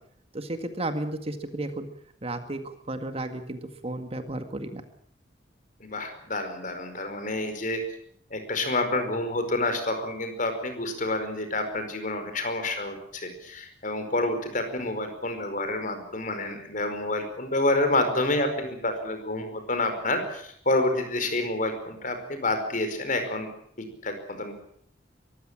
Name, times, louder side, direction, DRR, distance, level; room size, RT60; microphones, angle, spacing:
voice 1, 0.3-1.9 2.2-4.8, right 1 dB, 35° right, 8 dB, 1.9 m, -33 dB
voice 2, 5.8-7.8 8.3-24.5, left 2 dB, 50° left, 7 dB, 5.0 m, -28 dB
23.5 x 15.0 x 8.8 m, 0.66 s
head